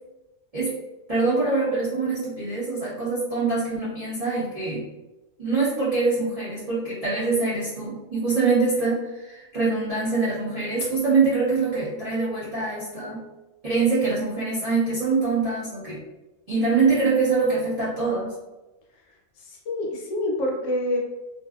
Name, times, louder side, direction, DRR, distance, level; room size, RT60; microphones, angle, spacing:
voice 1, 1.1-4.8 5.4-13.2 13.6-16.0 16.5-18.3, right 4 dB, 60° right, -9 dB, 0.4 m, -24 dB
voice 2, 19.4-21.0, left 1 dB, 70° left, -1 dB, 0.9 m, -27 dB
2.5 x 2.3 x 2.3 m, 1.0 s
omnidirectional pair, 1.5 m